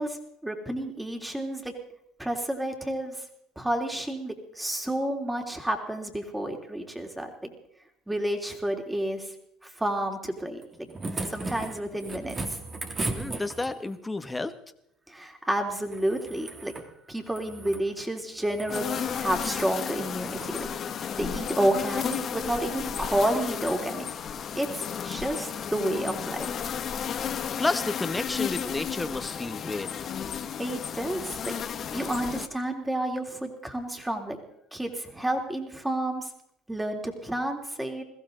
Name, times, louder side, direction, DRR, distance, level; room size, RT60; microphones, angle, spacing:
voice 1, 0.0-1.7 2.2-3.2 3.5-7.5 8.1-9.3 9.6-10.9 11.3-12.6 15.1-16.7 17.1-20.7 21.1-24.1 24.5-26.5 30.6-31.5 31.9-34.4 34.7-36.3 36.7-38.0, right 1 dB, 10° right, 3 dB, 3.4 m, -30 dB
sound 1, 10.6-13.9 15.9-16.9 17.2-17.9 18.4-18.8 19.5-19.7 20.3-20.5 21.9-22.0, right 3 dB, 30° right, 2.5 m, -36 dB
voice 2, 13.1-14.5 27.6-29.9, left 2 dB, 15° left, 10 dB, 1.5 m, -31 dB
sound 2, 18.7-32.5, left 8 dB, 45° left, 1.4 m, -33 dB
21.5 x 15.5 x 4.0 m, 0.76 s
hypercardioid pair, 80°, 0 cm